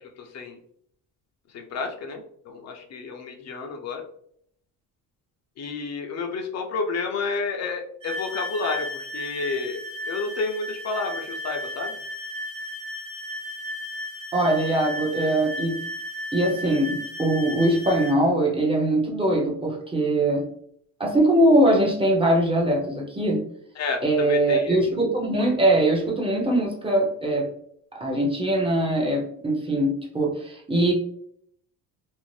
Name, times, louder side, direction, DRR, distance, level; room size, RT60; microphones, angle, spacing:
voice 1, 0.0-0.6 1.5-4.0 5.6-9.8 10.1-12.0 23.8-25.0, left 4 dB, 50° left, 3 dB, 0.5 m, -30 dB
sound 1, 8.0-18.2, left 1 dB, 55° right, 1.1 m, -34 dB
voice 2, 14.3-15.9 16.3-20.5 21.0-23.4 24.0-27.5 27.9-30.9, right 1 dB, 15° right, -1 dB, 0.6 m, -22 dB
2.6 x 2.0 x 3.1 m, 0.67 s
cardioid pair, 115°, 35 cm